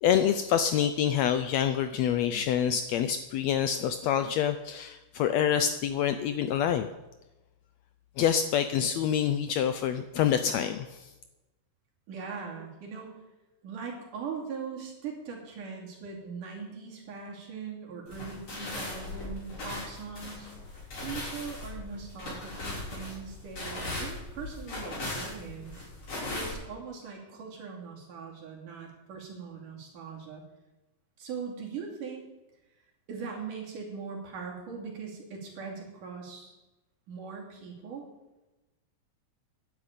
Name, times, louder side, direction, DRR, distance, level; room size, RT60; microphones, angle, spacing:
voice 1, 0.0-6.9 8.2-11.1, left 9 dB, 80° left, 10 dB, 1.6 m, -26 dB
voice 2, 12.1-13.2 13.6-20.5 21.0-25.8 26.3-30.4 31.2-32.2 33.1-36.5 37.1-38.1, right 5 dB, 80° right, -1 dB, 4.2 m, -40 dB
sound 1, 18.1-26.5, left 2 dB, 50° left, 5.5 m, -38 dB
10.5 x 8.2 x 8.8 m, 1.0 s
omnidirectional pair, 3.6 m